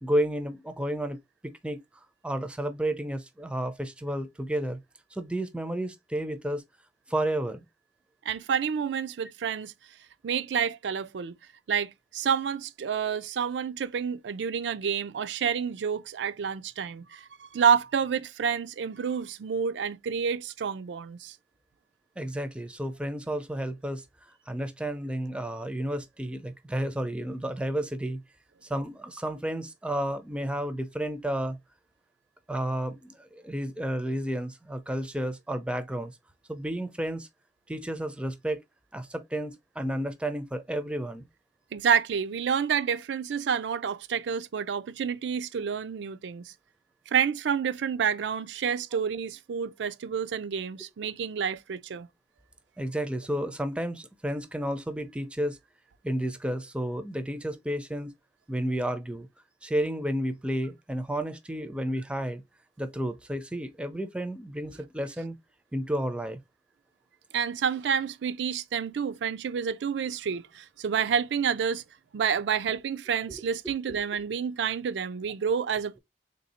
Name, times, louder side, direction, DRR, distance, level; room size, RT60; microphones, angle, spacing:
voice 1, 0.0-1.2 1.4-1.8 2.2-4.8 5.1-6.6 7.1-7.6 22.2-24.0 24.5-28.2 28.7-31.6 32.5-36.1 36.5-37.3 37.7-38.6 38.9-41.3 52.8-55.6 56.0-58.1 58.5-59.3 59.6-62.4 62.8-65.4 65.7-66.4, right 1 dB, 5° right, 0.4 m, -31 dB
voice 2, 8.3-9.7 10.2-11.3 11.7-21.4 41.7-46.5 47.1-52.1 67.3-71.8 72.1-76.0, right 7 dB, 85° right, 0.4 m, -29 dB
3.5 x 2.6 x 4.0 m
head